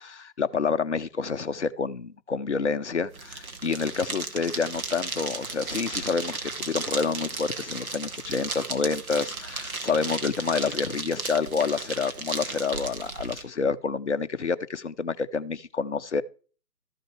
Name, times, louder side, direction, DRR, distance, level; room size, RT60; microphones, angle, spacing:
voice 1, 0.0-16.2, left 5 dB, 45° left, 0.6 m, -28 dB
sound 1, 3.1-13.4, right 3 dB, 55° right, 1.9 m, -35 dB
13.5 x 6.5 x 4.5 m
figure-of-eight pair, 150°, 50 cm